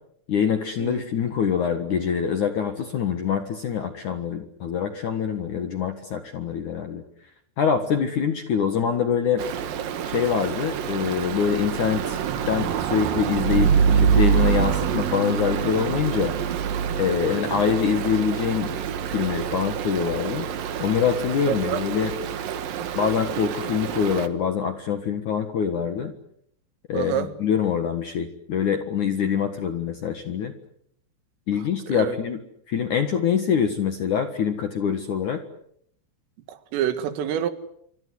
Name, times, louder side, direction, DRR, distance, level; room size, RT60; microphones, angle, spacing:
voice 1, 0.3-7.0 7.6-9.4 10.0-12.2 12.5-16.4 17.0-18.7 19.1-20.5 20.8-22.1 22.9-26.1 26.9-30.5 31.5-35.4, left 7 dB, 60° left, 7 dB, 2.1 m, -25 dB
Stream, 9.4-24.3, right 8 dB, 60° right, 2.6 m, -26 dB
voice 2, 21.5-21.8 26.9-27.3 31.9-32.2 36.5-37.5, right 10 dB, 85° right, 10 dB, 4.5 m, -27 dB
27.0 x 25.0 x 8.0 m, 0.71 s
omnidirectional pair, 5.7 m